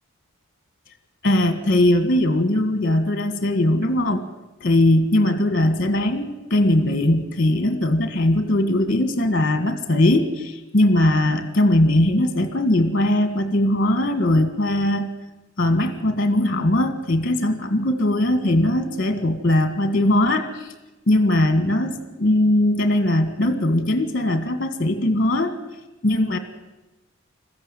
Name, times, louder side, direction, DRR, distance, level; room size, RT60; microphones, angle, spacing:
voice 1, 1.2-4.2 4.6-15.1 15.6-20.7 21.1-25.5 26.0-26.4, left 1 dB, 40° left, 9 dB, 1.7 m, -20 dB
21.0 x 14.5 x 9.1 m, 1.1 s
head